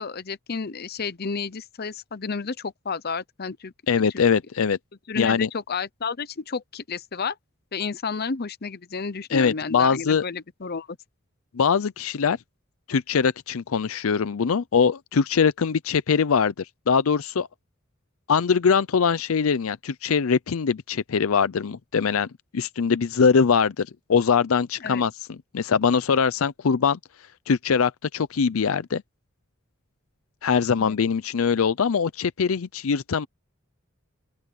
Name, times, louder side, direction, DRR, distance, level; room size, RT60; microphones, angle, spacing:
voice 1, 0.0-3.7 4.1-4.2 5.1-7.4 7.7-11.0 24.8-25.0 30.8-30.9, left 5 dB, 50° left, 0.8 m, -31 dB
voice 2, 3.9-4.8 5.2-5.5 9.3-10.2 11.5-12.4 12.9-17.5 18.3-22.3 22.5-27.0 27.5-29.0 30.4-33.3, left 6 dB, 80° left, 0.5 m, -22 dB
open air
head